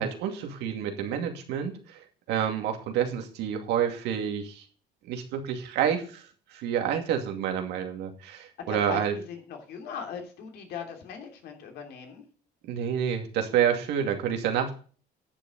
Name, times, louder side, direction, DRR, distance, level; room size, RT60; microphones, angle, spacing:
voice 1, 0.0-2.0 2.3-4.6 5.1-9.1 12.6-14.7, right 8 dB, 85° right, 4 dB, 2.4 m, -28 dB
voice 2, 8.6-12.2, left 7 dB, 75° left, 4 dB, 3.0 m, -39 dB
10.5 x 7.3 x 5.3 m, 0.40 s
cardioid pair, 110°, 17 cm